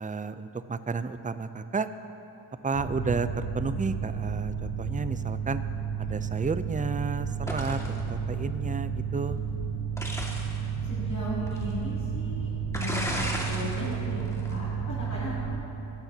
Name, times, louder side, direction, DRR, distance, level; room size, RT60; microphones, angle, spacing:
voice 1, 0.0-1.9 2.6-5.6 6.0-9.4, right 4 dB, 15° right, 12 dB, 0.4 m, -32 dB
Mechanical fan, 2.7-15.5, right 6 dB, 60° left, 1.4 m, -32 dB
sound 1, 7.5-8.0 10.0-10.6 11.5-11.6 12.7-13.8 14.2-14.5, equal, 5° left, 1.9 m, -33 dB
voice 2, 10.9-15.6, left 1 dB, 35° left, -9 dB, 2.7 m, -37 dB
19.0 x 12.0 x 2.8 m, 3.0 s
wide cardioid pair, 50°, 50 cm